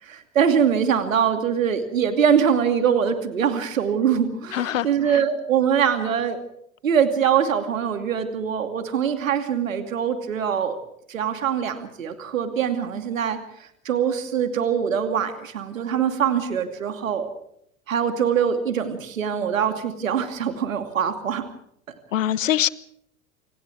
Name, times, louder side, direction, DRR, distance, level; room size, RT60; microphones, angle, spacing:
voice 1, 0.0-6.4 6.8-10.8 11.1-17.3 17.9-21.4, right 8 dB, 70° right, 7 dB, 2.6 m, -23 dB
voice 2, 4.5-5.2 22.1-22.7, left 11 dB, 70° left, 19 dB, 1.3 m, -24 dB
29.0 x 28.5 x 3.5 m, 0.71 s
figure-of-eight pair, 75°, 40 cm